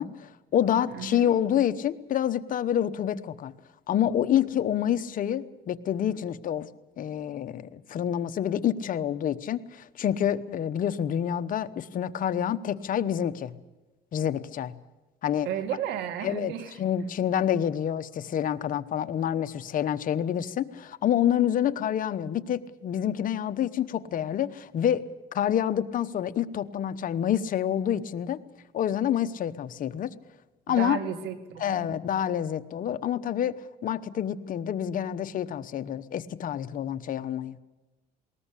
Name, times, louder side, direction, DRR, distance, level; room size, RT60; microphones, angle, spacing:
voice 1, 0.0-3.5 3.9-6.7 7.0-13.6 14.1-14.8 15.2-15.5 16.2-16.5 16.8-25.0 25.3-28.4 28.7-30.1 30.7-31.0 31.6-33.6 33.8-37.6, left 10 dB, 55° left, 11 dB, 1.0 m, -27 dB
voice 2, 0.9-1.3 15.4-16.8 30.7-32.0, right 9 dB, 85° right, 8 dB, 2.2 m, -33 dB
20.0 x 19.5 x 8.3 m, 1.1 s
cardioid pair, 110°, 17 cm